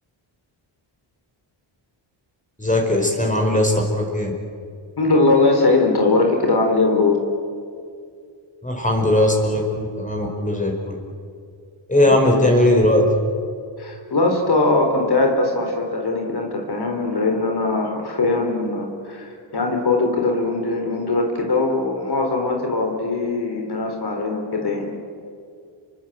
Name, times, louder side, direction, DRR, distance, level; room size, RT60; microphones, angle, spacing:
voice 1, 2.6-4.3 8.6-11.0 11.9-13.0, left 1 dB, 15° left, 0 dB, 5.0 m, -19 dB
voice 2, 5.0-7.2 12.0-12.5 13.8-24.9, left 3 dB, 50° left, 2 dB, 4.3 m, -21 dB
29.0 x 23.5 x 8.2 m, 2.3 s
cardioid pair, 80°, 48 cm